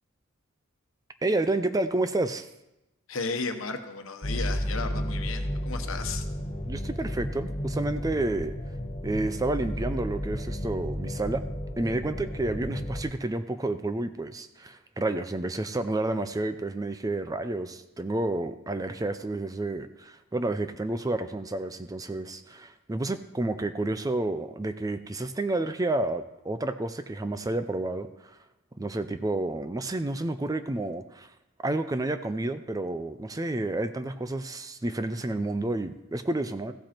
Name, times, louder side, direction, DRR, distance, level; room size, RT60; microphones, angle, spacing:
voice 1, 1.2-2.5 6.7-8.6 9.0-11.4 11.8-28.4 28.8-31.3 31.6-36.7, right 2 dB, 15° right, 10 dB, 0.5 m, -30 dB
voice 2, 3.1-6.2, left 4 dB, 75° left, 6 dB, 1.1 m, -34 dB
sound 1, 4.2-13.0, equal, 30° left, 1.2 m, -32 dB
15.0 x 7.7 x 4.4 m, 0.92 s
head